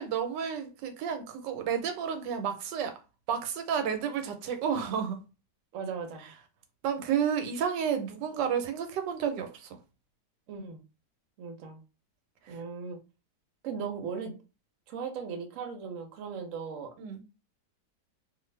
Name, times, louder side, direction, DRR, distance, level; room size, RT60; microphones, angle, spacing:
voice 1, 0.0-2.9 3.3-5.2 6.8-9.7 12.5-12.6 17.0-17.2, right 7 dB, 90° right, 1.3 m, -31 dB
voice 2, 5.7-6.3 10.5-10.8 11.4-11.8 12.5-13.0 13.6-14.3 14.9-16.9, right 6 dB, 60° right, 0.9 m, -37 dB
2.6 x 2.5 x 3.1 m
omnidirectional pair, 1.9 m